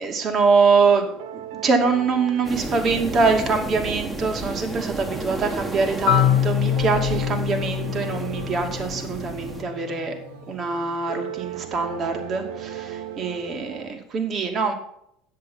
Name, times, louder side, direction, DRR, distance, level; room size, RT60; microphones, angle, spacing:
voice 1, 0.0-10.1 10.5-14.7, right 4 dB, 40° right, 4 dB, 2.5 m, -23 dB
sound 1, 0.7-13.9, right 8 dB, 75° right, 0.9 m, -39 dB
sound 2, 2.4-9.6, right 2 dB, 20° right, 1.7 m, -33 dB
Marimba xylophone, 6.1-9.9, left 12 dB, 75° left, 0.5 m, -24 dB
10.0 x 8.0 x 5.6 m, 0.74 s
hypercardioid pair, 85°, 0 cm